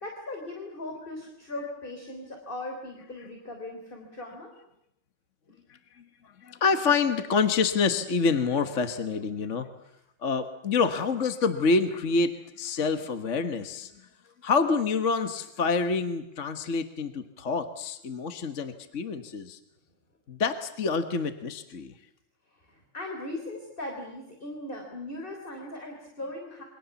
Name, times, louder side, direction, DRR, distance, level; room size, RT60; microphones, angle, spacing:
voice 1, 0.0-4.5 22.5-26.6, left 2 dB, 25° left, 3 dB, 3.8 m, -39 dB
voice 2, 6.4-9.7 10.2-13.9 14.4-19.6 20.3-21.9, left 4 dB, 40° left, 8 dB, 1.4 m, -27 dB
28.0 x 24.0 x 7.1 m, 0.77 s
omnidirectional pair, 2.4 m